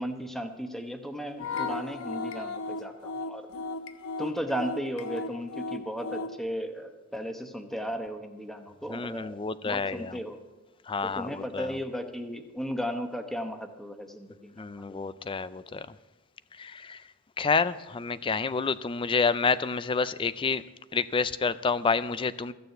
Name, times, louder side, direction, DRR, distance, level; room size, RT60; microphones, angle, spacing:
voice 1, 0.0-3.4 4.2-9.4 9.6-10.4 11.0-15.0, equal, ahead, 6 dB, 0.9 m, -35 dB
sound 1, 1.4-6.4, left 3 dB, 80° left, 0.9 m, -35 dB
voice 2, 8.9-10.1 10.9-11.7 14.6-15.9 16.6-17.0 17.4-20.6 20.9-22.5, left 4 dB, 25° left, 16 dB, 0.4 m, -28 dB
14.5 x 6.8 x 7.8 m, 1.1 s
head